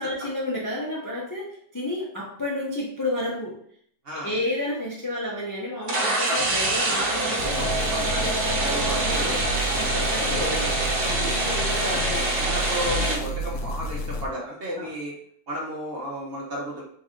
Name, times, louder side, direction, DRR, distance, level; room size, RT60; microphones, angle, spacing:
voice 1, 0.0-3.6 4.2-7.9 8.6-8.7 9.0-9.4 9.7-10.7 11.9-12.0 14.8-14.9, left 1 dB, 25° left, -4 dB, 0.4 m, -31 dB
sound 1, 5.8-13.2, right 2 dB, 75° right, 1.3 m, -25 dB
sound 2, 7.4-14.3, right 1 dB, 70° left, 1.0 m, -31 dB
voice 2, 7.6-9.4 9.7-9.9 10.2-10.6 11.0-15.1 15.5-16.8, right 1 dB, 40° right, -4 dB, 1.0 m, -33 dB
4.0 x 2.7 x 3.7 m, 0.63 s
omnidirectional pair, 1.7 m